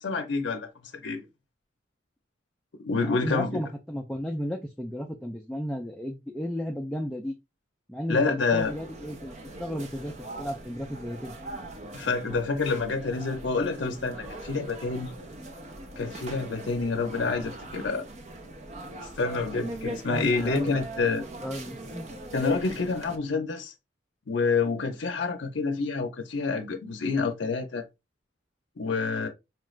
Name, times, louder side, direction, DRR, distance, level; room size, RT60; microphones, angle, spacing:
voice 1, 0.0-1.2 2.8-3.6 8.1-8.7 11.9-15.1 16.0-18.1 19.2-21.2 22.3-23.7 24.3-27.8 28.8-29.3, left 4 dB, 70° left, 0.6 m, -28 dB
voice 2, 3.0-7.4 7.9-10.1 10.4-11.3 20.1-20.8 21.4-22.1, equal, 5° left, 0.3 m, -34 dB
sound 1, 8.6-23.2, right 1 dB, 35° right, 0.6 m, -40 dB
4.4 x 2.4 x 3.1 m
head